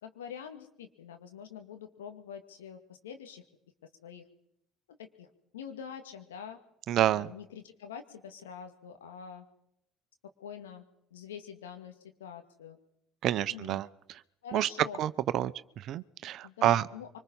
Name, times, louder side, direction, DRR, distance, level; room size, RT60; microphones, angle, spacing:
voice 1, 0.0-3.4 4.0-4.2 5.0-5.3 5.5-6.6 7.1-9.5 10.4-10.9 11.1-12.8 13.3-13.8 14.4-15.0 16.4-17.1, left 8 dB, 80° left, 6 dB, 2.2 m, -45 dB
voice 2, 6.9-7.3 13.2-13.8 14.5-14.7 15.0-15.5 15.9-16.8, right 12 dB, 55° right, 15 dB, 0.8 m, -28 dB
25.5 x 24.5 x 5.6 m, 0.78 s
figure-of-eight pair, 55°, 0 cm